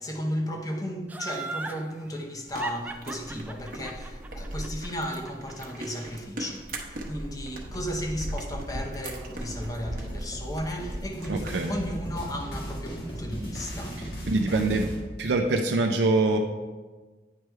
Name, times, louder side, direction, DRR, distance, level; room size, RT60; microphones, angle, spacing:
voice 1, 0.0-14.1, equal, 20° left, 0.7 m, -34 dB
Laughter, 1.1-1.8 2.6-5.7 6.1-6.2, right 3 dB, 10° right, 0.3 m, -36 dB
sound 1, 2.5-14.2, right 1 dB, 50° right, 0.9 m, -39 dB
sound 2, 9.4-15.0, equal, 60° left, 1.8 m, -37 dB
voice 2, 11.3-11.8 14.3-14.9 15.2-16.4, right 2 dB, 75° right, 0.5 m, -24 dB
9.2 x 3.4 x 4.4 m
head